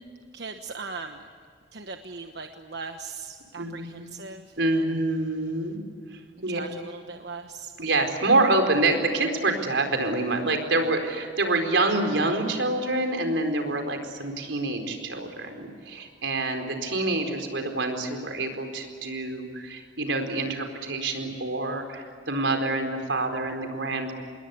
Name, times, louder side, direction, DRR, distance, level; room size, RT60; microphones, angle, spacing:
voice 1, 0.3-1.3 1.7-5.0 6.5-7.7, right 4 dB, 65° right, 5 dB, 1.2 m, -39 dB
voice 2, 3.6-4.1 4.6-5.8 6.1-6.6 7.8-24.1, right 2 dB, 90° right, 5 dB, 4.4 m, -26 dB
27.5 x 21.5 x 8.5 m, 2.2 s
head